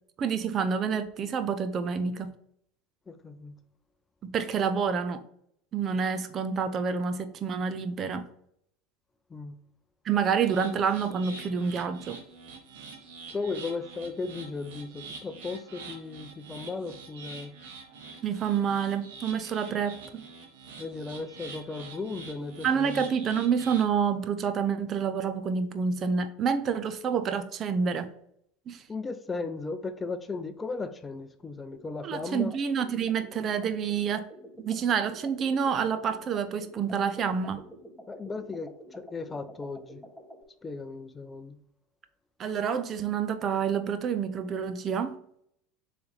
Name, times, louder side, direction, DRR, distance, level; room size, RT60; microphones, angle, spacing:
voice 1, 0.2-2.3 4.2-5.2 5.7-8.2 10.0-12.2 18.2-20.2 22.6-28.1 28.7-28.8 32.0-34.3 34.6-37.6 42.4-45.2, right 6 dB, 40° right, 0.7 m, -28 dB
voice 2, 3.1-3.5 9.3-9.6 13.3-17.5 20.8-23.1 28.9-32.6 38.1-40.0 40.6-41.6, left 4 dB, 20° left, 0.7 m, -36 dB
sound 1, 10.4-23.9, right 4 dB, 70° right, 1.4 m, -46 dB
sound 2, 31.7-40.4, equal, 5° right, 2.2 m, -49 dB
6.8 x 3.4 x 4.1 m
hypercardioid pair, 80°, 0 cm